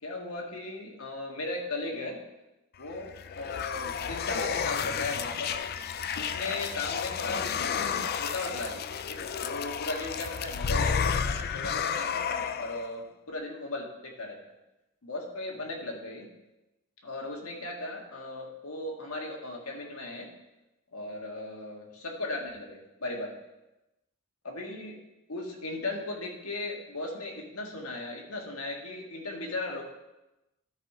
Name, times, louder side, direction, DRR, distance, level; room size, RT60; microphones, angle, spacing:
voice 1, 0.0-2.2 2.8-5.5 6.2-14.4 15.0-16.3 17.0-20.3 20.9-23.3 24.4-25.0 25.3-29.8, left 2 dB, 80° left, 0 dB, 1.7 m, -37 dB
sound 1, 2.9-12.9, left 7 dB, 45° left, 0.4 m, -31 dB
12.0 x 4.9 x 4.9 m, 0.97 s
head